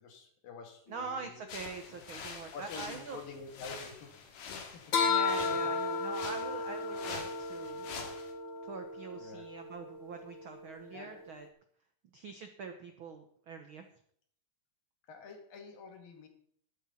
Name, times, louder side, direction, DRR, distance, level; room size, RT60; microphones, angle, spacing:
voice 1, 0.0-1.4 1.8-2.0 2.5-5.1 5.4-5.7 9.1-9.5 10.9-11.2 15.1-16.3, left 4 dB, 90° left, 5 dB, 3.8 m, -48 dB
sound 1, 0.9-1.1 4.9-11.5, left 4 dB, 50° left, 1.6 m, -35 dB
voice 2, 0.9-3.2 5.1-7.9 8.6-11.5 12.1-13.8, right 5 dB, 85° right, 7 dB, 1.1 m, -44 dB
sound 2, 1.5-8.3, left 5 dB, 75° left, 3.4 m, -46 dB
12.5 x 12.5 x 4.2 m, 0.63 s
omnidirectional pair, 3.9 m